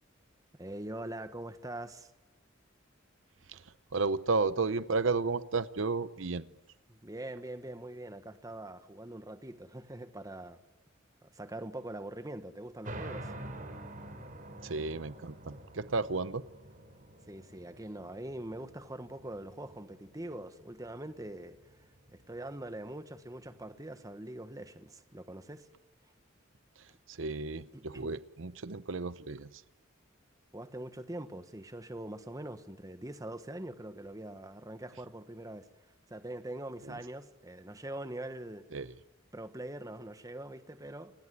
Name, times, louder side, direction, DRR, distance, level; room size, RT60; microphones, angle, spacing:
voice 1, 0.6-2.1 6.9-10.6 11.2-13.3 17.3-25.7 27.7-28.1 30.5-35.7 36.1-38.7 39.3-41.1, right 1 dB, 15° right, 1.4 m, -43 dB
voice 2, 3.9-6.5 14.6-16.4 27.1-29.5 38.7-38.9, right 4 dB, 75° right, 0.8 m, -32 dB
sound 1, 12.8-24.0, right 1 dB, 40° right, 4.0 m, -48 dB
29.5 x 18.0 x 9.8 m
head